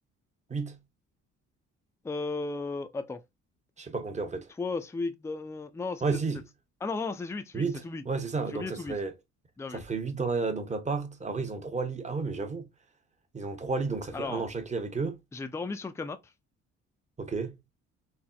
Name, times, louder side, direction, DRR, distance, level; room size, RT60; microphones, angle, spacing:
voice 1, 2.0-3.2 4.6-6.2 6.8-8.0 8.5-9.0 9.6-9.8 14.1-14.5 15.3-16.2, left 3 dB, 10° left, 0.4 m, -35 dB
voice 2, 3.8-4.5 6.0-6.4 7.5-9.1 9.7-12.7 13.3-15.2 17.2-17.6, right 4 dB, 25° right, 0.8 m, -32 dB
4.2 x 2.0 x 2.3 m
cardioid pair, 90°, 30 cm